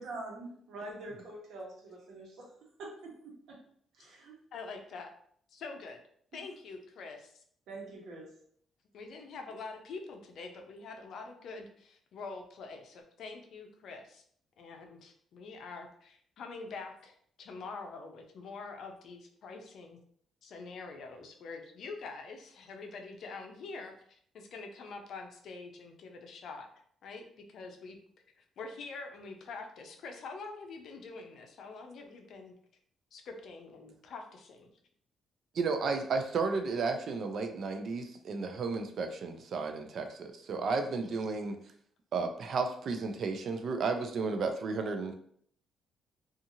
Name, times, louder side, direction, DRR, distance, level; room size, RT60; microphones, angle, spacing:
voice 1, 0.0-2.3 2.8-3.6 3.9-4.4 7.7-8.3, right 2 dB, 75° right, -1 dB, 1.0 m, -44 dB
voice 2, 4.5-5.1 5.5-6.0 6.3-7.4 8.9-14.2 14.6-20.0 20.4-23.9 24.3-26.7 27.0-28.0 28.4-32.5 33.1-34.7, left 4 dB, 70° left, 4 dB, 0.5 m, -45 dB
voice 3, 35.5-41.6 42.1-45.1, right 4 dB, 60° right, 6 dB, 0.4 m, -33 dB
2.7 x 2.4 x 2.7 m, 0.62 s
cardioid pair, 90°, 0 cm